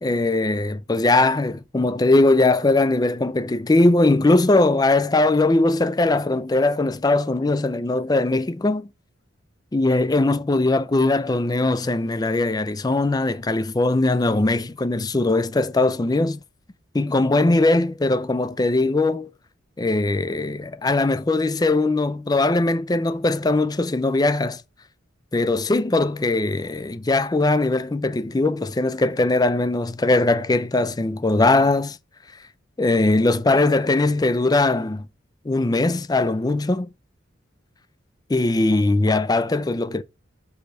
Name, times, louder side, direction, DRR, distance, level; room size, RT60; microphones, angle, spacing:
voice 1, 0.0-8.9 9.7-16.4 16.9-19.3 19.8-24.6 25.3-32.0 32.8-35.1 35.4-36.9 38.3-40.0, left 2 dB, 20° left, 0.4 m, -20 dB
6.4 x 4.9 x 4.0 m
head